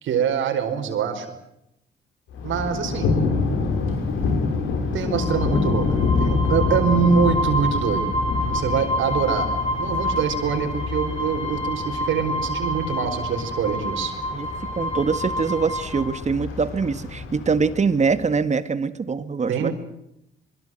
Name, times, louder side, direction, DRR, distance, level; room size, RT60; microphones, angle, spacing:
voice 1, 0.0-1.3 2.4-3.1 4.9-8.1 8.5-9.5 9.8-14.1 19.5-19.7, right 7 dB, 75° right, 7 dB, 5.0 m, -24 dB
Thunder, 2.3-18.2, left 4 dB, 90° left, 5.4 m, -27 dB
sound 1, 5.2-16.0, equal, 30° left, 6.0 m, -28 dB
voice 2, 14.8-19.7, right 5 dB, 35° right, 12 dB, 2.1 m, -23 dB
24.5 x 23.0 x 7.9 m, 0.83 s
cardioid pair, 90°, 20 cm